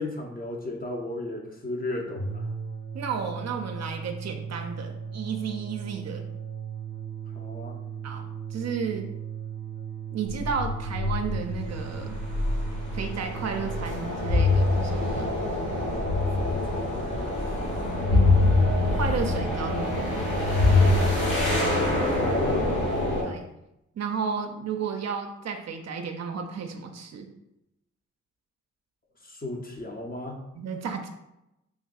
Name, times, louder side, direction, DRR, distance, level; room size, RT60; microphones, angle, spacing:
voice 1, 0.0-2.4 7.3-7.8 16.4-17.8 22.1-22.8 29.2-30.4, left 2 dB, 30° left, 1 dB, 0.6 m, -35 dB
sound 1, 2.0-14.0, right 6 dB, 45° left, 1.1 m, -37 dB
voice 2, 2.9-6.3 8.0-9.1 10.1-12.2 12.9-15.3 18.1-18.4 18.9-20.1 23.2-23.4 23.9-27.3 30.5-31.1, right 6 dB, 60° right, 4 dB, 0.5 m, -33 dB
sound 2, 10.3-23.2, left 2 dB, 75° left, 1.4 m, -25 dB
3.5 x 2.5 x 2.3 m, 0.88 s
cardioid pair, 55°, 30 cm